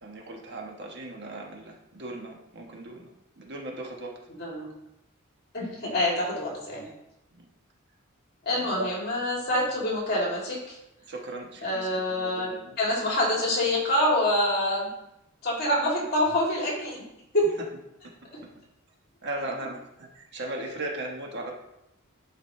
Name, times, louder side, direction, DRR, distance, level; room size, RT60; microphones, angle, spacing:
voice 1, 0.0-4.2 7.3-7.4 8.5-8.9 11.0-12.8 19.2-21.6, right 1 dB, 55° right, 0 dB, 1.3 m, -37 dB
voice 2, 5.5-6.9 8.4-10.8 11.6-12.5 12.8-14.9 15.4-17.0 17.3-17.5, left 1 dB, 50° left, -3 dB, 2.8 m, -26 dB
11.0 x 5.0 x 3.2 m, 0.86 s
head